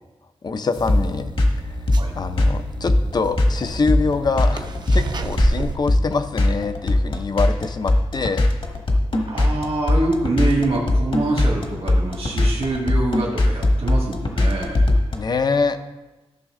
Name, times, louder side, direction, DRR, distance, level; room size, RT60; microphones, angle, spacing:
voice 1, 0.4-1.3 1.7-1.8 2.1-8.5 15.1-15.8, left 4 dB, 40° left, 9 dB, 0.5 m, -24 dB
sound 1, 0.8-5.8, right 2 dB, 45° right, 0.6 m, -31 dB
sound 2, 0.9-15.2, left 1 dB, 55° left, 1.3 m, -19 dB
voice 2, 9.3-15.0, right 2 dB, 65° right, -2 dB, 1.7 m, -25 dB
13.5 x 6.2 x 3.7 m, 1.1 s
wide cardioid pair, 150°, 11 cm